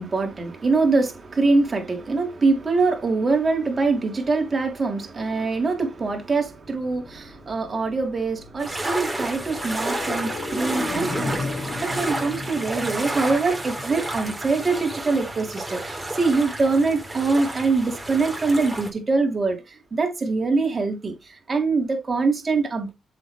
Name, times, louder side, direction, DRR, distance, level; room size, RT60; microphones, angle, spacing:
voice 1, 0.0-22.9, right 3 dB, 35° right, 3.2 m, -24 dB
sound 1, 6.3-16.1 16.5-16.6, left 2 dB, 55° left, 4.0 m, -36 dB
sound 2, 8.6-18.9, right 1 dB, 15° right, 3.2 m, -31 dB
7.5 x 6.6 x 3.1 m
cardioid pair, 65°, 0 cm